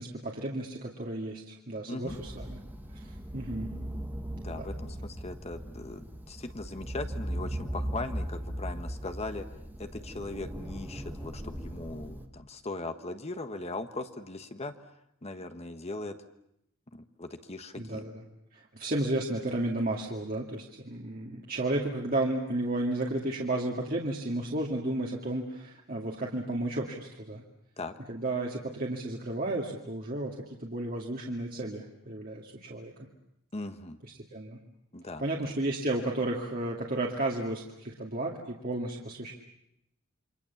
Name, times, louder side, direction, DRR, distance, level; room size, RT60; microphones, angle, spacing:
voice 1, 0.0-2.6 2.9-3.7 4.5-4.7 17.8-18.2 18.5-27.4 28.1-32.9 34.0-34.6 35.2-39.3, right 2 dB, 45° right, -1 dB, 2.4 m, -33 dB
sound 1, 2.1-12.3, equal, 10° right, 1.8 m, -38 dB
voice 2, 4.4-9.5 9.8-14.8 15.2-16.1 16.9-18.0 27.8-27.9 33.5-34.0 34.9-35.2, left 2 dB, 30° left, 8 dB, 1.3 m, -39 dB
28.5 x 25.0 x 7.2 m, 0.79 s
head